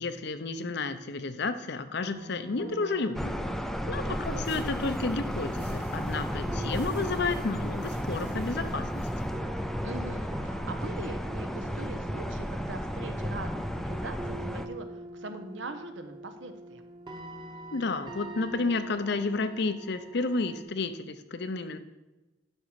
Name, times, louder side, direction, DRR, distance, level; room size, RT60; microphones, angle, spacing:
voice 1, 0.0-3.4 3.9-9.1 17.7-21.8, left 3 dB, 60° left, 10 dB, 0.7 m, -31 dB
sound 1, 2.0-20.6, right 1 dB, 25° right, 1.2 m, -45 dB
sound 2, 3.1-14.7, equal, ahead, 0.4 m, -33 dB
voice 2, 4.0-4.4 9.8-16.8, right 2 dB, 75° right, 7 dB, 1.0 m, -42 dB
sound 3, 4.1-9.3, right 1 dB, 55° right, 2.3 m, -51 dB
11.0 x 6.2 x 4.8 m, 1.1 s
head